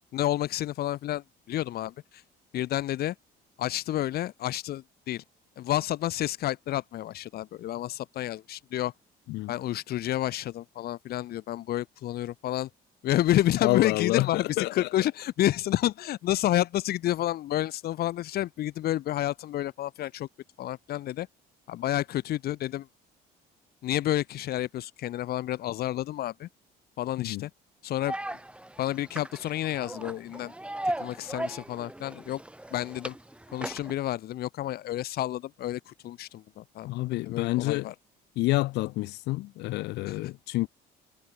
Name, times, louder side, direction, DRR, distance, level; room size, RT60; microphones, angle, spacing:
voice 1, 0.1-2.2 2.5-3.2 3.6-5.2 5.6-8.9 9.5-12.7 13.0-20.3 20.6-21.3 21.7-22.9 23.8-26.5 27.0-27.5 27.8-28.2 28.8-30.5 31.0-32.4 32.7-33.1 33.5-36.9 37.3-37.9 40.1-40.3, left 13 dB, 65° left, 2.0 m, -30 dB
voice 2, 13.6-14.9 27.2-27.4 36.9-37.9 38.4-40.7, left 19 dB, 85° left, 2.3 m, -28 dB
sound 1, 28.0-33.9, right 1 dB, 5° right, 2.0 m, -37 dB
cardioid pair, 110°, 17 cm